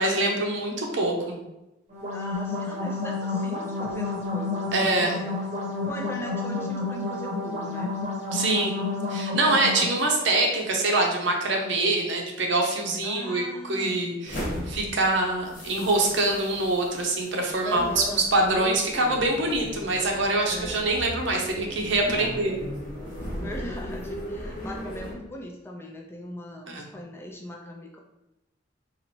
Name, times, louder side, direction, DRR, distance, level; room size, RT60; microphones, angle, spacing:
voice 1, 0.0-1.4 4.7-5.1 8.3-8.7 9.1-18.0 18.3-22.6 26.7-26.9, right 2 dB, 65° right, 1 dB, 0.7 m, -25 dB
sound 1, 1.9-9.9, left 3 dB, 35° right, 0.8 m, -30 dB
voice 2, 2.1-5.3 5.8-8.0 9.4-9.6 13.0-14.2 17.6-18.3 20.5-20.9 22.0-22.5 23.3-28.0, left 1 dB, 10° left, 0 dB, 0.3 m, -39 dB
sound 2, 14.2-25.1, equal, 40° left, 1.0 m, -37 dB
4.1 x 2.5 x 2.9 m, 0.96 s
head